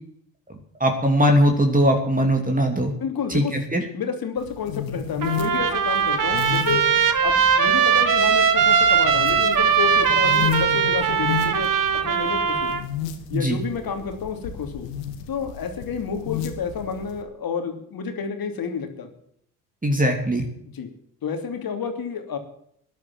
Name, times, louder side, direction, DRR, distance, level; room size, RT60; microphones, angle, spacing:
voice 1, 0.8-2.9 3.3-3.8 13.3-13.6 19.8-20.5, equal, 15° right, 3 dB, 2.9 m, -20 dB
voice 2, 3.0-3.6 3.9-6.8 7.2-12.8 13.3-14.9 15.3-19.1 20.6-20.9 21.2-22.4, left 6 dB, 50° left, 5 dB, 2.9 m, -30 dB
sound 1, 4.4-17.2, left 8 dB, 80° left, 1.6 m, -33 dB
Trumpet, 5.2-12.8, right 7 dB, 40° right, 1.8 m, -20 dB
14.0 x 10.5 x 7.7 m, 0.70 s
hypercardioid pair, 50°, 47 cm